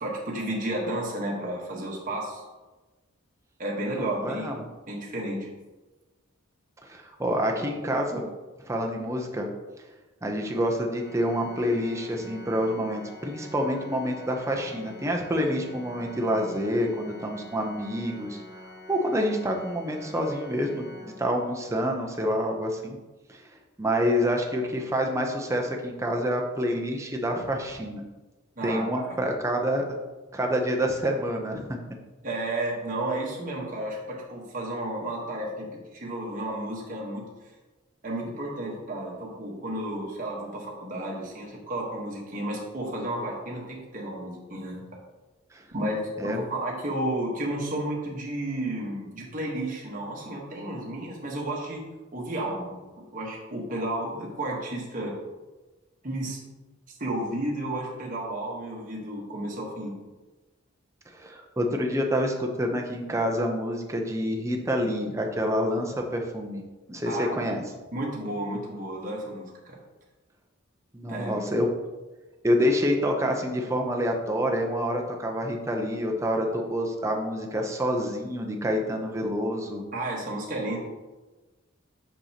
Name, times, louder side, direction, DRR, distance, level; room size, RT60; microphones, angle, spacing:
voice 1, 0.0-2.4 3.6-4.6 4.9-5.5 28.5-29.2 32.2-37.3 38.0-44.8 45.7-51.8 52.1-55.1 56.0-56.4 57.0-59.9 67.0-67.4 67.9-69.8 71.1-71.5 79.9-80.8, right 1 dB, 40° right, -3 dB, 1.3 m, -32 dB
voice 2, 3.9-4.5 6.8-8.2 8.7-9.5 10.2-18.4 18.9-23.0 23.3-23.4 23.8-28.0 28.6-29.8 30.3-31.8 45.5-45.6 46.2-46.4 61.1-66.6 66.9-67.6 70.9-71.7 72.4-79.8, equal, 15° right, 2 dB, 0.6 m, -27 dB
Organ, 10.9-21.8, left 1 dB, 50° left, 1.1 m, -46 dB
6.5 x 5.2 x 2.9 m, 1.2 s
head